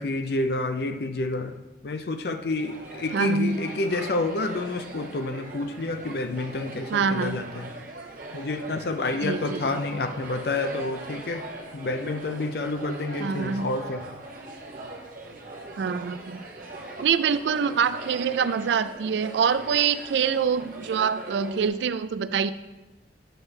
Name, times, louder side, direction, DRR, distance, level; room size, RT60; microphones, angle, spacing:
voice 1, 0.0-1.6 1.8-7.7 8.3-11.4 11.7-14.1, left 2 dB, 60° left, 8 dB, 0.6 m, -29 dB
sound 1, 2.6-21.7, right 2 dB, 50° right, 1.1 m, -40 dB
voice 2, 3.1-3.6 6.9-7.4 9.2-9.8 13.2-13.7 15.8-16.4 17.0-22.5, right 6 dB, 80° right, 13 dB, 0.3 m, -25 dB
9.0 x 3.2 x 6.3 m, 1.1 s
head